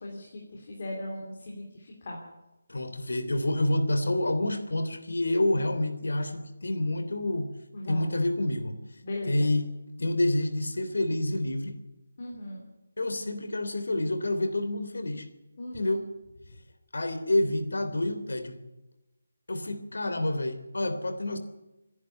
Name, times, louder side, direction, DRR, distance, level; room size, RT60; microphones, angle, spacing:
voice 1, 0.0-2.2 7.7-8.2 9.0-9.5 12.2-12.6 15.6-16.0, left 1 dB, 30° left, -1 dB, 3.3 m, -38 dB
voice 2, 2.7-7.5 7.8-8.8 9.2-9.7 10.0-11.8 13.0-15.3 15.7-16.1 16.9-18.6 19.5-21.4, left 1 dB, 85° left, 9 dB, 3.3 m, -28 dB
26.5 x 11.0 x 9.4 m, 0.99 s
figure-of-eight pair, 175°, 0 cm